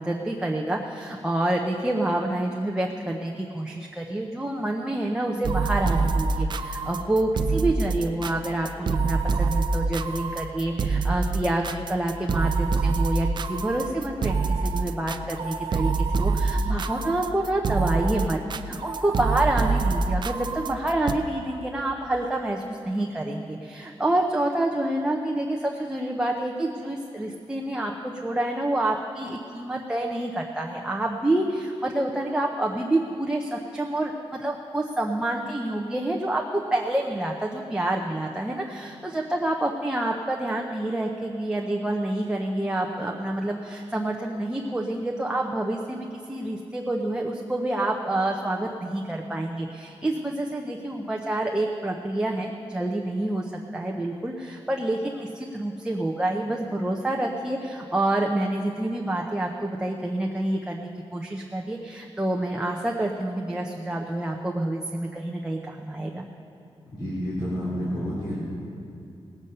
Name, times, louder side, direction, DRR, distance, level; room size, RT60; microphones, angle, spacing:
voice 1, 0.0-66.3, right 1 dB, 10° right, -1 dB, 0.7 m, -28 dB
sound 1, 5.4-21.1, right 4 dB, 50° right, 0.4 m, -26 dB
voice 2, 66.9-68.3, equal, 45° left, -10 dB, 3.3 m, -29 dB
18.5 x 8.0 x 5.5 m, 2.6 s
wide cardioid pair, 155°, 10 cm